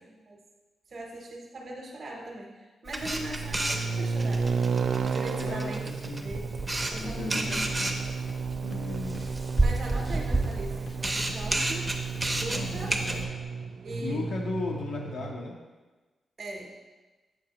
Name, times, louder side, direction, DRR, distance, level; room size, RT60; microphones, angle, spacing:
voice 1, 0.1-0.4 0.9-4.5 5.0-5.8 6.2-6.5 6.9-7.7 9.6-11.9 12.3-13.0 13.8-14.2 16.4-16.8, right 1 dB, 45° right, -2 dB, 0.7 m, -40 dB
Camera, 2.9-13.2, right 2 dB, 10° right, 0.5 m, -31 dB
sound 1, 3.0-15.3, right 5 dB, 65° right, 0.3 m, -33 dB
voice 2, 5.3-5.8 6.0-6.3 6.9-8.0 8.6-9.2 12.5-13.3 14.0-15.6, left 3 dB, 85° left, -1 dB, 0.7 m, -36 dB
sound 2, 6.6-13.4, left 1 dB, 45° left, 0.5 m, -46 dB
7.5 x 4.9 x 2.9 m, 1.2 s
wide cardioid pair, 155°, 0 cm